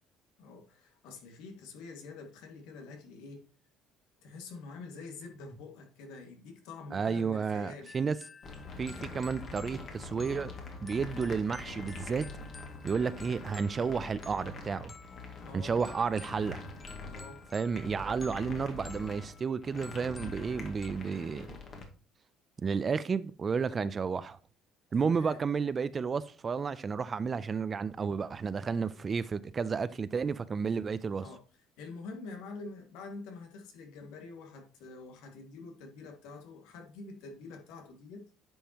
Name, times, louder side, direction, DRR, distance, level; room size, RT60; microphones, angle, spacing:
voice 1, 0.4-3.4 4.2-7.9 15.4-15.8 17.0-17.4 24.9-25.4 31.2-31.4 31.8-38.2, left 3 dB, 85° left, 2.1 m, -46 dB
voice 2, 6.9-8.2 8.8-10.5 10.8-12.3 12.8-14.9 15.5-16.6 17.5-21.5 22.6-24.4 24.9-31.2, right 5 dB, 30° right, 0.4 m, -32 dB
sound 1, 7.8-20.9, left 4 dB, 20° left, 0.6 m, -53 dB
sound 2, 8.4-21.8, left 2 dB, 45° left, 2.1 m, -44 dB
10.0 x 5.4 x 2.9 m
cardioid pair, 125°, 0 cm